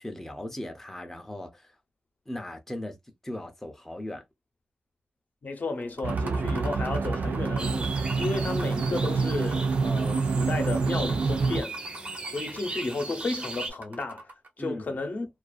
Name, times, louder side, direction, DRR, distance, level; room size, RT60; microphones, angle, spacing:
voice 1, 0.0-1.7 2.3-3.0 3.2-4.2 14.6-14.8, left 1 dB, 10° left, 0.5 m, -38 dB
voice 2, 5.4-11.8 12.2-14.3 14.6-15.3, left 3 dB, 60° left, 0.7 m, -33 dB
sound 1, 5.9-14.5, right 2 dB, 65° right, 1.0 m, -43 dB
sound 2, 6.0-11.6, right 4 dB, 80° right, 0.3 m, -27 dB
sound 3, 7.6-13.7, right 2 dB, 30° right, 0.7 m, -38 dB
2.4 x 2.3 x 2.3 m
wide cardioid pair, 130°, 3 cm